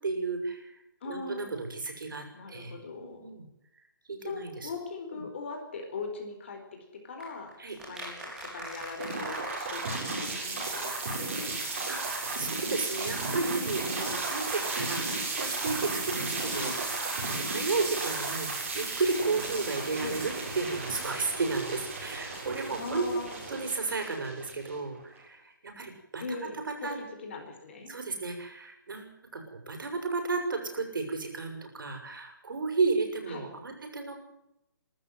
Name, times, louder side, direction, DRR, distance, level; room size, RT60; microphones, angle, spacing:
voice 1, 0.0-0.8 1.1-3.4 4.1-4.7 5.1-5.2 7.6-7.8 11.9-18.5 18.7-23.1 23.5-26.4 26.6-27.0 27.9-34.2, right 3 dB, 75° right, 4 dB, 7.1 m, -33 dB
voice 2, 1.0-1.5 2.3-3.3 4.2-6.8 7.0-7.5 7.9-11.9 16.5-16.8 20.0-20.2 22.7-23.4 26.2-27.9 33.3-33.5, left 4 dB, 35° left, 4 dB, 4.7 m, -40 dB
sound 1, 7.2-11.2 11.5-11.6 11.8-11.9, right 1 dB, 5° right, 4.9 m, -43 dB
sound 2, 9.0-25.0, right 3 dB, 35° right, 6.9 m, -34 dB
22.0 x 13.0 x 9.3 m, 0.87 s
hypercardioid pair, 180°, 11 cm